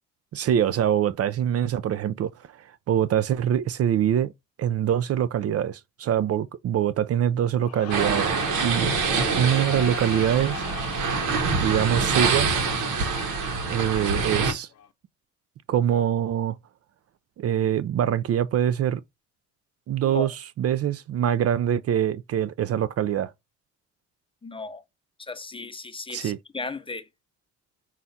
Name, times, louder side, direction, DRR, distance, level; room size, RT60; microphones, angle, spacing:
voice 1, 0.3-4.3 4.6-8.3 8.6-8.9 9.3-10.6 11.6-12.5 13.7-14.7 15.7-16.6 17.4-19.0 19.9-23.3 26.1-26.4, right 10 dB, 55° right, 0.5 m, -24 dB
Crowd, 7.6-14.9, left 9 dB, 55° left, 0.7 m, -38 dB
sound 1, 7.9-14.5, right 5 dB, 85° right, 0.9 m, -25 dB
voice 2, 24.4-24.8 25.2-27.1, left 3 dB, 15° left, 0.6 m, -35 dB
5.6 x 2.4 x 3.9 m
cardioid pair, 90°, 30 cm